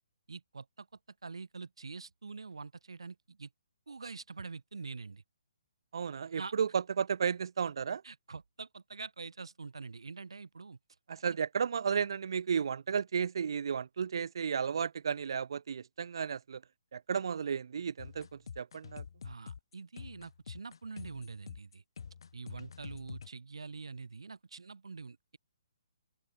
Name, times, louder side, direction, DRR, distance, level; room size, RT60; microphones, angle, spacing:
voice 1, 0.3-0.9 1.2-3.5 3.9-5.2 6.4-6.5 8.0-10.8 11.2-11.4 19.2-21.8 22.3-25.4, right 4 dB, 85° right, 6.4 m, -45 dB
voice 2, 5.9-8.0 11.1-16.6 16.9-19.0, right 6 dB, 65° right, 1.4 m, -33 dB
sound 1, 18.0-23.3, left 6 dB, 65° left, 3.9 m, -47 dB
open air
hypercardioid pair, 150°, 3 cm